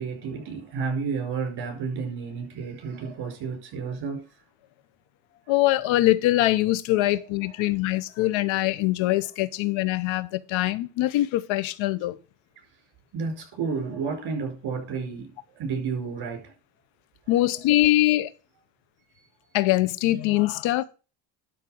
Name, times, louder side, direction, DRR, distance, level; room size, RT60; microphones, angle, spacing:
voice 1, 0.0-4.3 7.0-7.3 13.1-16.5, right 5 dB, 55° right, 5.1 m, -31 dB
voice 2, 5.5-12.2 17.3-18.3 19.5-20.8, left 16 dB, 80° left, 0.9 m, -23 dB
12.0 x 4.2 x 6.3 m
cardioid pair, 115°, 46 cm